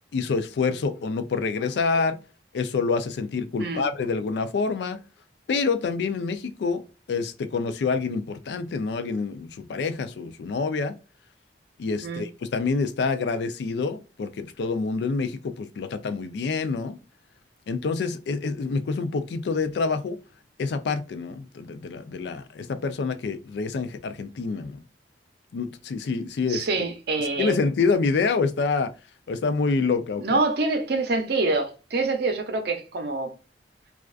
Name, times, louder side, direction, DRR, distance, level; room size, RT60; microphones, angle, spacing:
voice 1, 0.1-2.2 2.5-5.0 5.5-6.8 7.1-11.0 11.8-17.0 17.7-20.2 20.6-24.8 25.5-26.7 27.4-28.9 29.3-30.4, left 4 dB, 70° left, 0.3 m, -27 dB
voice 2, 26.5-27.6 30.2-33.3, right 3 dB, 60° right, 0.6 m, -26 dB
2.4 x 2.2 x 2.3 m
head